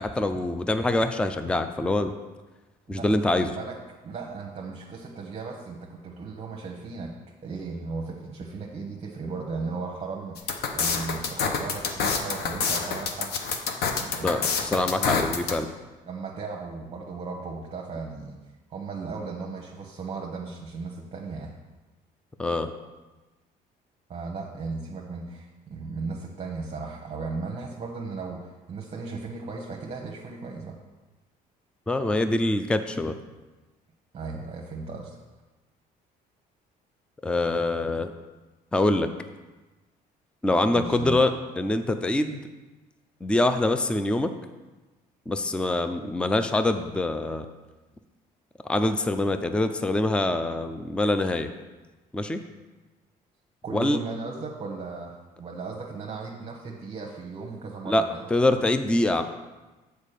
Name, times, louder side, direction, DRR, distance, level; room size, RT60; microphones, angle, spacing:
voice 1, 0.0-2.1 2.9-3.5 14.2-15.7 22.4-22.7 31.9-33.2 37.2-38.1 38.7-39.1 40.4-41.3 41.6-42.4 43.2-44.3 45.3-47.5 48.7-51.5 52.1-52.4 53.7-54.0 57.9-58.0 58.3-59.2, left 2 dB, 5° left, 9 dB, 0.4 m, -24 dB
voice 2, 2.9-3.8 4.0-7.1 7.4-13.3 13.9-14.4 16.0-18.4 18.7-21.5 24.1-30.8 34.1-35.2 40.7-41.2 53.6-58.2, right 4 dB, 35° right, -1 dB, 1.0 m, -36 dB
sound 1, 10.4-15.5, left 5 dB, 70° left, 0.9 m, -27 dB
7.3 x 4.6 x 6.6 m, 1.2 s
cardioid pair, 110°, 17 cm